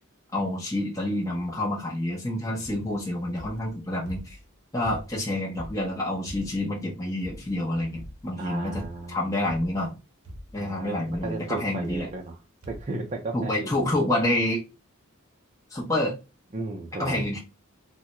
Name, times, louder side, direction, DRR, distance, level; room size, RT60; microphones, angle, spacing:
voice 1, 0.3-4.4 4.7-9.9 10.5-12.1 13.3-14.6 15.7-16.2 17.0-17.4, left 1 dB, 15° left, -4 dB, 0.6 m, -28 dB
sound 1, 2.6-3.0 3.4-4.5 4.8-6.8 7.2-7.6 7.9-8.4 8.7-9.1 9.5-10.0 10.2-10.7 11.1-11.4 11.8-12.4 12.6-13.0 13.7-13.8 14.0-14.1, equal, 90° right, 0.8 m, -43 dB
voice 2, 8.4-9.4 10.6-12.4 12.7-13.9 16.5-17.2, right 3 dB, 35° right, 1 dB, 0.5 m, -35 dB
3.5 x 2.1 x 2.9 m, 0.29 s
head